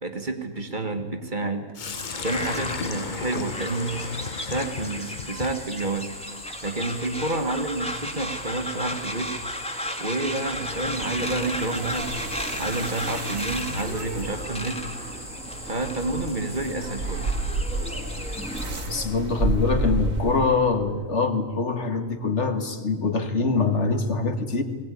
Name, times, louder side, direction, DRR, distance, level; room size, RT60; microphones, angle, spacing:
voice 1, 0.0-1.7 2.2-4.0 4.4-6.1 6.6-9.3 10.0-12.1 12.6-14.9 15.6-17.3, right 2 dB, 35° right, 5 dB, 1.9 m, -29 dB
Sink (filling or washing), 1.7-9.7, left 6 dB, 40° left, 0.8 m, -37 dB
sound 1, 1.8-18.7, left 1 dB, 5° left, 1.8 m, -34 dB
sound 2, 10.3-20.7, right 2 dB, 80° right, 2.9 m, -31 dB
voice 2, 18.9-24.6, left 4 dB, 60° left, 6 dB, 1.8 m, -24 dB
21.0 x 18.0 x 9.9 m, 1.5 s
omnidirectional pair, 1.4 m